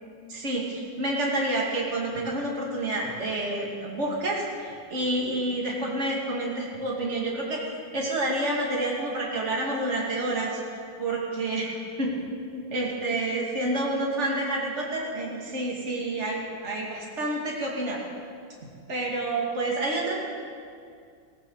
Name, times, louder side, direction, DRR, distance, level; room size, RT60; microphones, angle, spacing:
voice 1, 0.3-7.6 7.9-10.6 11.0-12.1 12.5-18.0 18.9-20.1, right 1 dB, 35° right, -3 dB, 2.8 m, -29 dB
18.0 x 14.0 x 4.9 m, 2.3 s
omnidirectional pair, 2.1 m